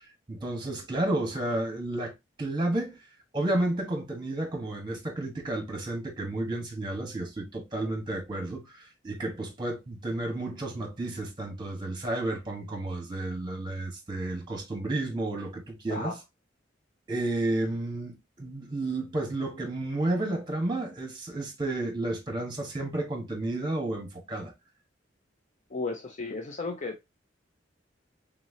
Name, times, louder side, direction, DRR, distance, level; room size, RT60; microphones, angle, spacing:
voice 1, 0.3-2.1 2.4-3.0 3.3-16.1 17.1-24.5, right 2 dB, 25° right, 1.4 m, -31 dB
voice 2, 15.9-16.2 25.7-27.0, left 3 dB, 40° left, 0.6 m, -34 dB
4.3 x 3.8 x 2.7 m
head